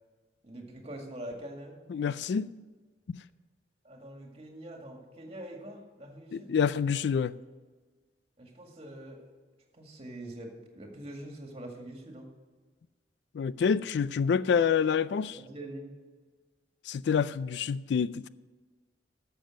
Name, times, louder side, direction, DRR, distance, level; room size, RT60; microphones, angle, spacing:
voice 1, 0.4-1.8 3.8-6.6 8.4-9.3 9.7-12.3 15.3-15.9, right 1 dB, 35° right, 2.1 m, -44 dB
voice 2, 1.9-2.5 3.1-3.2 6.3-7.3 13.3-15.4 16.9-18.3, left 6 dB, 70° left, 0.3 m, -27 dB
13.0 x 7.0 x 6.4 m
head